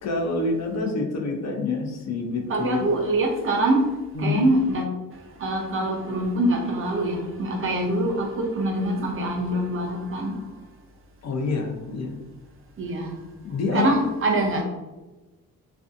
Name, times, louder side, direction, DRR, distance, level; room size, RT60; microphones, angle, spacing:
voice 1, 0.0-2.9 4.2-4.5 11.2-12.2 13.4-14.0, left 3 dB, 50° left, 1 dB, 0.4 m, -27 dB
voice 2, 2.5-3.9 4.2-4.9 5.1-10.4 12.8-13.2 13.7-14.6, right 1 dB, 40° right, 1 dB, 0.4 m, -24 dB
2.5 x 2.3 x 2.4 m, 1.1 s
wide cardioid pair, 155°, 34 cm